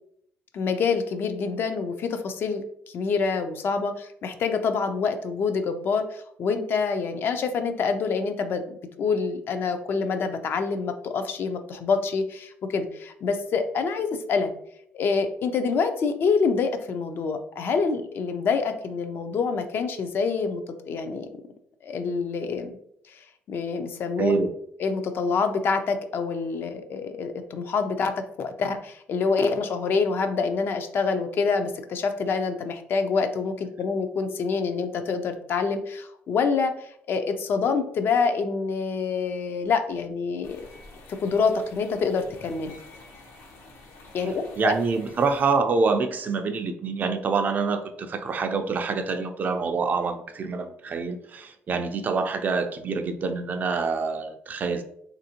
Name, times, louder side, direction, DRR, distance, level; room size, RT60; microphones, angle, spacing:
voice 1, 0.5-14.5 14.9-21.3 21.8-22.8 23.1-24.3 24.8-40.6 41.1-42.8 44.1-44.7, left 5 dB, 55° left, 8 dB, 0.4 m, -26 dB
voice 2, 24.2-24.5 44.6-54.8, right 4 dB, 40° right, 7 dB, 0.4 m, -26 dB
sound 1, 40.4-45.6, left 3 dB, 80° left, 0.8 m, -48 dB
3.5 x 2.5 x 2.8 m, 0.70 s
cardioid pair, 115°, 5 cm